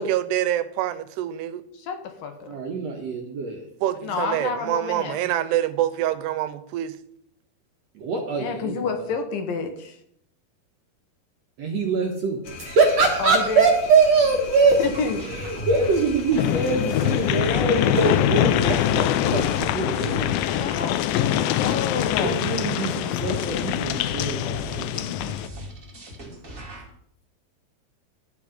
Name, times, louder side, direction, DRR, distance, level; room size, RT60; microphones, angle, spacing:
voice 1, 0.0-1.6 3.8-7.0, right 12 dB, 90° right, 2.8 m, -26 dB
voice 2, 1.7-2.6 4.0-5.2 8.4-10.0 13.2-13.7 14.8-15.2 20.3-22.4, left 5 dB, 70° left, 2.5 m, -29 dB
voice 3, 2.5-3.7 4.1-4.2 7.9-9.1 11.6-14.8 15.3-20.3 22.2-25.3, right 4 dB, 60° right, 1.8 m, -23 dB
sound 1, 12.4-19.7, left 3 dB, 55° left, 2.2 m, -38 dB
sound 2, 14.7-26.9, left 1 dB, 25° right, 1.8 m, -38 dB
sound 3, 16.3-25.5, left 13 dB, 85° left, 2.0 m, -24 dB
12.5 x 8.4 x 5.1 m
omnidirectional pair, 4.7 m